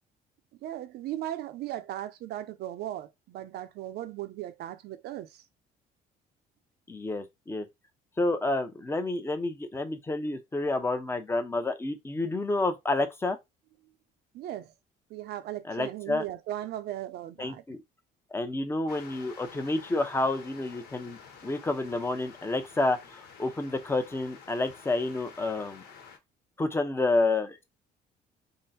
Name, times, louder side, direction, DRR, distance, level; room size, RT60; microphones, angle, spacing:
voice 1, 0.6-5.4 14.3-14.7 15.1-17.6, right 13 dB, 70° right, 0.7 m, -37 dB
voice 2, 6.9-7.7 8.2-13.4 15.7-16.2 17.4-17.8 18.3-23.0 23.4-25.8 26.6-27.6, left 2 dB, 15° left, 0.8 m, -29 dB
sound 1, 18.9-26.2, left 6 dB, 70° left, 1.3 m, -50 dB
3.7 x 2.2 x 4.2 m
cardioid pair, 110°, 17 cm